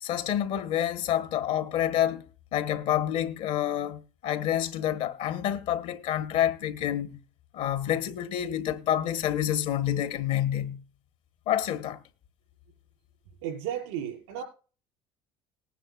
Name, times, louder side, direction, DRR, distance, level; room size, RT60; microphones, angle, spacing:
voice 1, 0.0-2.2 2.5-7.2 7.5-10.8 11.5-12.0, left 11 dB, 70° left, 1.4 m, -28 dB
voice 2, 13.4-14.4, right 10 dB, 85° right, 5.4 m, -34 dB
19.5 x 9.9 x 2.5 m
supercardioid pair, 80°, 13 cm